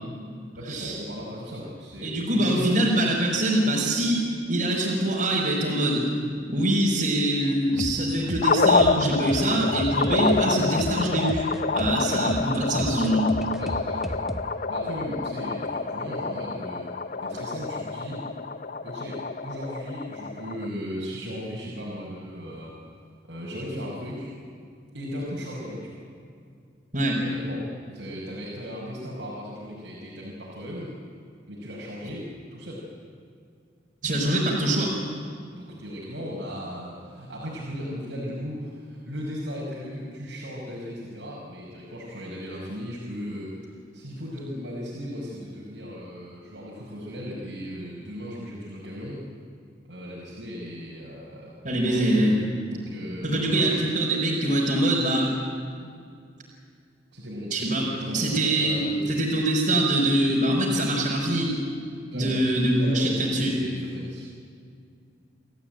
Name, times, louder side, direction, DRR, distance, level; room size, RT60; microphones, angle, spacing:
voice 1, 0.5-2.8 12.0-12.2 13.5-16.9 17.2-18.3 18.8-22.7 23.2-24.3 24.9-26.0 27.2-30.9 31.5-32.8 35.5-43.6 43.9-49.2 49.9-52.2 52.7-53.6 57.1-59.2 62.1-64.2, equal, 80° right, -5 dB, 5.7 m, -36 dB
voice 2, 2.0-6.1 6.5-11.5 11.7-13.3 26.9-27.2 34.0-34.9 51.6-52.4 53.2-55.3 57.5-58.8 59.1-61.5 62.1-63.6, right 1 dB, 45° right, -5 dB, 4.7 m, -24 dB
sound 1, 7.7-14.5, equal, ahead, 1.1 m, -35 dB
sound 2, 8.4-20.7, left 4 dB, 45° left, 0.6 m, -27 dB
29.5 x 14.5 x 9.1 m, 2.2 s
head